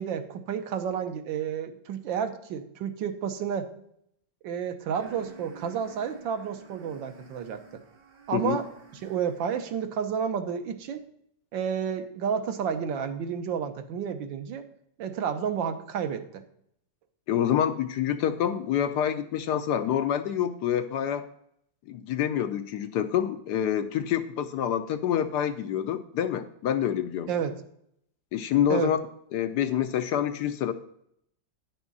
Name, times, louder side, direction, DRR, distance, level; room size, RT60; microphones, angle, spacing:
voice 1, 0.0-3.7 4.4-7.8 8.3-8.7 9.0-11.0 11.5-14.6 15.0-16.4 27.3-27.6 28.7-28.9, right 7 dB, 80° right, 8 dB, 1.6 m, -31 dB
sound 1, 4.9-9.8, right 4 dB, 35° right, 1.1 m, -50 dB
voice 2, 17.3-21.3 21.9-27.3 28.3-29.0 29.3-30.7, left 10 dB, 70° left, 9 dB, 1.1 m, -27 dB
10.5 x 6.1 x 4.0 m, 0.71 s
omnidirectional pair, 2.0 m